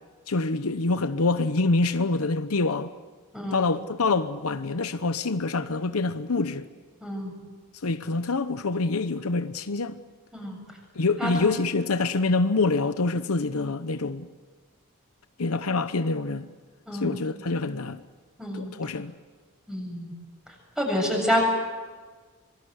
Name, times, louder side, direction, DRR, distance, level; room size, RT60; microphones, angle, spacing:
voice 1, 0.3-2.9 3.5-6.7 7.8-10.0 10.9-14.3 15.4-16.5 16.9-18.0 18.5-19.1, left 3 dB, 75° left, 0.9 m, -26 dB
voice 2, 3.3-3.6 7.0-7.3 10.3-10.6 11.2-11.5 16.9-17.2 18.4-18.7 19.7-20.1 20.8-21.5, left 1 dB, 5° right, 7.6 m, -28 dB
25.5 x 23.5 x 8.2 m
head